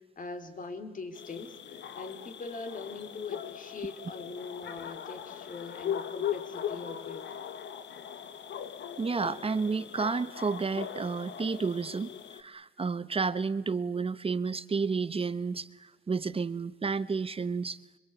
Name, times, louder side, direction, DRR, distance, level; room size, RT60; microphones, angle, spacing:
voice 1, 0.2-7.2, left 4 dB, 45° left, 8 dB, 4.2 m, -42 dB
sound 1, 1.1-12.4, left 9 dB, 65° left, 1.6 m, -39 dB
voice 2, 9.0-17.8, right 4 dB, 30° right, 14 dB, 1.1 m, -31 dB
26.0 x 23.5 x 8.5 m, 1.1 s
cardioid pair, 90°, 20 cm